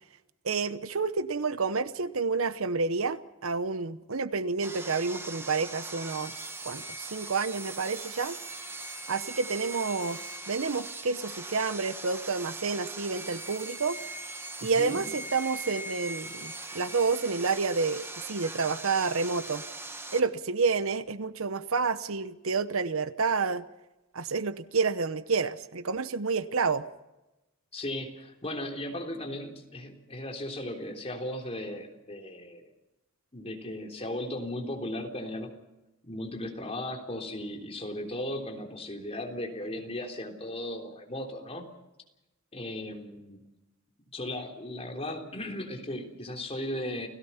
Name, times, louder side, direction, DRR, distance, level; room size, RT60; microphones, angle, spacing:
voice 1, 0.4-6.3 6.6-8.4 9.1-14.0 14.6-19.6 20.1-23.6 24.1-26.8, right 4 dB, 70° right, 13 dB, 0.9 m, -29 dB
Sawing, 4.6-20.2, right 2 dB, 10° right, 1.6 m, -40 dB
voice 2, 14.6-15.0 27.7-32.6 33.3-35.5 36.0-41.7 42.5-43.4 44.1-47.1, left 1 dB, 30° left, 3 dB, 3.5 m, -36 dB
29.5 x 17.0 x 5.8 m, 0.99 s
head